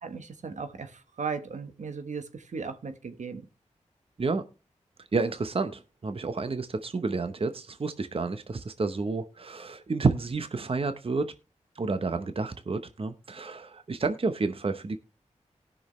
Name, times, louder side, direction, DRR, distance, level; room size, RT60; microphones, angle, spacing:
voice 1, 0.0-3.4, right 5 dB, 75° right, 1.3 m, -37 dB
voice 2, 5.0-11.3 11.7-15.0, right 3 dB, 50° right, 0.8 m, -30 dB
18.5 x 6.3 x 3.1 m
cardioid pair, 45°, 12 cm